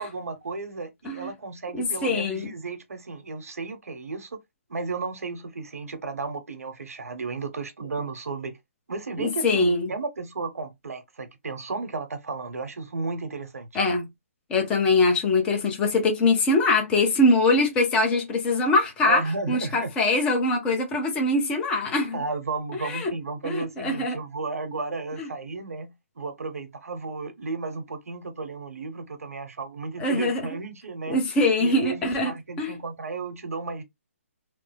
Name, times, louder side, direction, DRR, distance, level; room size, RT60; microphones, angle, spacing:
voice 1, 0.0-4.4 4.7-8.6 8.9-13.7 19.0-19.9 22.1-31.2 31.6-33.8, right 4 dB, 80° right, 1.0 m, -33 dB
voice 2, 1.7-2.5 9.2-9.9 13.7-14.1 14.5-19.2 19.5-22.2 22.8-23.1 23.4-24.2 25.2-25.3 30.0-30.4 31.1-32.7, left 2 dB, 10° left, 0.7 m, -23 dB
3.3 x 2.0 x 3.3 m
hypercardioid pair, 160°, 8 cm